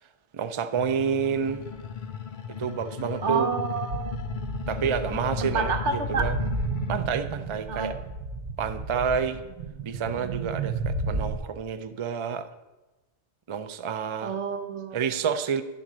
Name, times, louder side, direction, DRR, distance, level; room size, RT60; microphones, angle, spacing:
voice 1, 0.3-1.6 2.5-3.5 4.7-6.3 6.9-8.0 8.6-9.4 9.8-12.5 13.5-14.4 14.9-15.6, right 7 dB, 45° right, 9 dB, 0.4 m, -29 dB
sound 1, 0.8-7.0, left 7 dB, 50° left, 0.7 m, -36 dB
voice 2, 3.2-4.1 5.4-6.3 7.7-7.9 14.2-15.0, right 5 dB, 85° right, 7 dB, 1.2 m, -29 dB
sound 2, 3.9-11.4, right 3 dB, 60° right, 0.9 m, -33 dB
11.0 x 4.0 x 7.4 m, 1.1 s
omnidirectional pair, 1.2 m